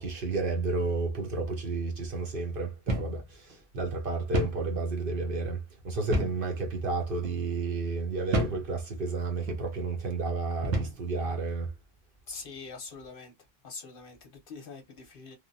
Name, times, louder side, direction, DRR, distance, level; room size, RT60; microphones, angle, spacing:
voice 1, 0.0-5.6 5.8-11.7, right 3 dB, 55° right, 0.9 m, -31 dB
sound 1, 2.9-3.2 3.5-3.6 4.3-4.6 6.1-6.5 7.1-7.3 8.3-8.7 9.4-9.6 10.6-11.0, right 1 dB, 85° right, 1.1 m, -29 dB
voice 2, 12.3-13.3 13.6-15.4, left 4 dB, 55° left, 0.8 m, -44 dB
3.1 x 2.1 x 2.6 m
omnidirectional pair, 1.2 m